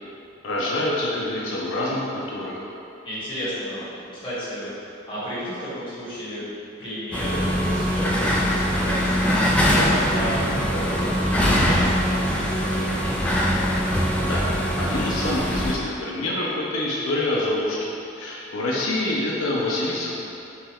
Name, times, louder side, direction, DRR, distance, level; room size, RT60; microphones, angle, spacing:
voice 1, 0.4-2.6 14.3-14.4 14.8-20.2, left 1 dB, 80° left, -5 dB, 0.6 m, -26 dB
voice 2, 3.0-6.4 6.8-13.2, equal, 25° left, -11 dB, 1.4 m, -33 dB
sound 1, 7.1-15.7, equal, 5° left, 0.3 m, -22 dB
5.5 x 2.3 x 3.5 m, 2.7 s
head